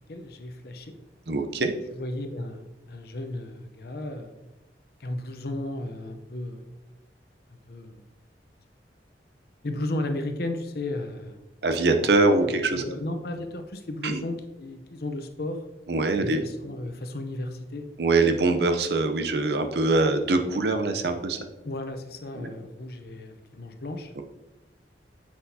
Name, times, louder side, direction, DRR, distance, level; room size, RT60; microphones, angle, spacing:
voice 1, 0.1-0.9 1.9-4.3 5.0-6.7 7.7-8.0 9.6-11.4 12.7-15.6 16.2-17.8 21.6-24.1, left 1 dB, 60° left, 6 dB, 0.7 m, -34 dB
voice 2, 1.3-1.7 11.6-12.8 14.0-14.2 15.9-16.4 18.0-21.4 22.4-22.5 24.2-24.3, right 3 dB, 65° right, 7 dB, 0.7 m, -23 dB
7.9 x 5.9 x 2.8 m, 1.0 s
head